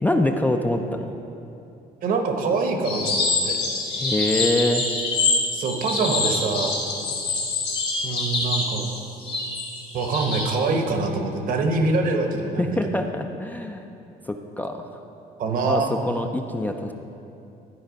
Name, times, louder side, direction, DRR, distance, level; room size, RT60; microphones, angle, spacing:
voice 1, 0.0-1.2 3.9-4.9 12.6-13.9 14.3-14.8 15.6-16.9, left 1 dB, 10° left, 4 dB, 0.4 m, -25 dB
voice 2, 2.0-3.6 5.5-6.8 8.0-8.9 9.9-13.0 15.4-15.9, right 3 dB, 55° right, 4 dB, 1.0 m, -24 dB
sound 1, 2.8-10.5, left 3 dB, 85° left, 2.0 m, -25 dB
11.5 x 4.3 x 5.1 m, 2.7 s
cardioid pair, 110°, 17 cm